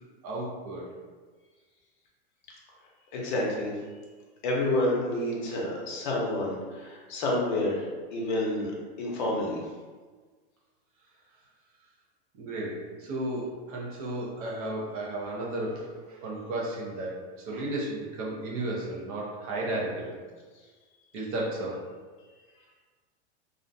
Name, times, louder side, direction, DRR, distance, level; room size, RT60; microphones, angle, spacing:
voice 1, 0.2-0.9 12.3-20.1 21.1-21.9, right 1 dB, 35° right, -4 dB, 0.5 m, -34 dB
voice 2, 3.1-3.7 4.4-8.7 9.0-9.6, left 1 dB, 45° left, -3 dB, 0.7 m, -29 dB
2.4 x 2.1 x 2.5 m, 1.4 s
supercardioid pair, 165°, 33 cm